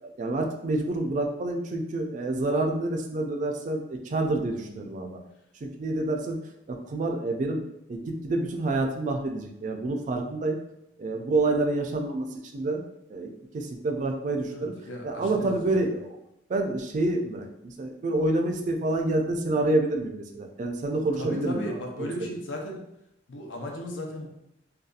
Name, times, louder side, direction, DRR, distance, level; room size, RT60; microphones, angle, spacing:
voice 1, 0.0-5.2 5.6-6.4 6.7-7.6 7.9-10.6 11.0-12.8 13.1-13.3 13.5-14.7 15.0-16.2 16.5-22.1, right 2 dB, 40° right, 3 dB, 0.3 m, -28 dB
voice 2, 14.5-15.8 21.1-22.8 23.3-24.3, left 1 dB, 85° left, 1 dB, 0.6 m, -36 dB
2.7 x 2.2 x 2.4 m, 0.81 s
head